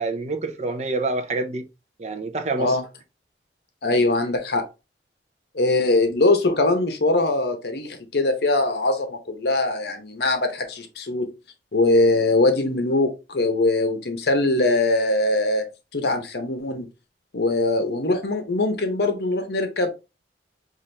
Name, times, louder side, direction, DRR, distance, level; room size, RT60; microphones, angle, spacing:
voice 1, 0.0-1.7 2.0-2.8, right 3 dB, 40° right, 0.6 m, -27 dB
voice 2, 3.8-4.6 5.5-11.3 11.7-15.6 15.9-16.9 17.3-19.9, left 2 dB, 65° left, 0.8 m, -22 dB
5.6 x 2.5 x 3.3 m
head